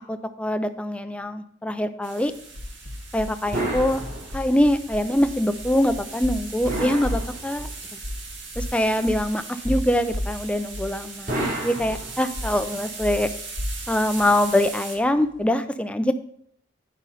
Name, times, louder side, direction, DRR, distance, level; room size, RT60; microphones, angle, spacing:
voice 1, 0.1-2.3 3.1-4.0 4.3-7.7 8.6-11.4 11.6-13.3 13.9-16.1, left 1 dB, 5° left, 9 dB, 0.4 m, -23 dB
sound 1, 2.0-15.0, right 4 dB, 65° right, 1.7 m, -39 dB
sound 2, 2.2-15.5, left 1 dB, 65° left, 1.0 m, -35 dB
sound 3, 3.5-4.7 6.6-7.9 11.3-12.6, right 1 dB, 50° right, 2.4 m, -30 dB
9.9 x 5.1 x 5.5 m, 0.69 s
head